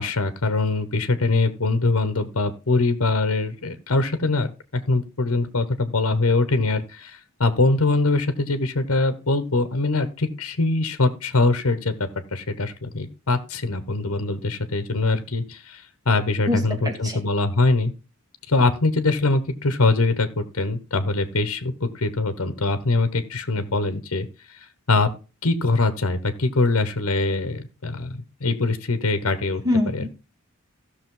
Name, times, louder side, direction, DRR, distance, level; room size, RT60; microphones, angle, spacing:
voice 1, 0.0-4.5 4.7-11.9 12.3-17.9 18.5-24.3 24.9-25.1 25.4-29.6 29.9-30.1, left 3 dB, 75° left, 10 dB, 1.2 m, -23 dB
voice 2, 16.5-17.2 29.6-30.1, left 2 dB, 15° right, 3 dB, 2.0 m, -24 dB
15.5 x 6.4 x 3.9 m, 0.31 s
head